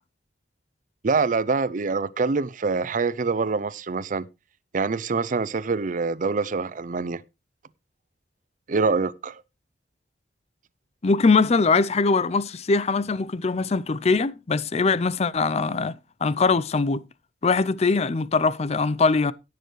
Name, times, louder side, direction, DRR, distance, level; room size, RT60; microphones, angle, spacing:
voice 1, 1.0-4.3 4.7-7.2 8.7-9.4, right 4 dB, 45° right, 0.5 m, -25 dB
voice 2, 11.0-15.9 16.2-17.0 17.4-19.3, left 4 dB, 35° left, 0.5 m, -22 dB
16.5 x 6.8 x 3.1 m
head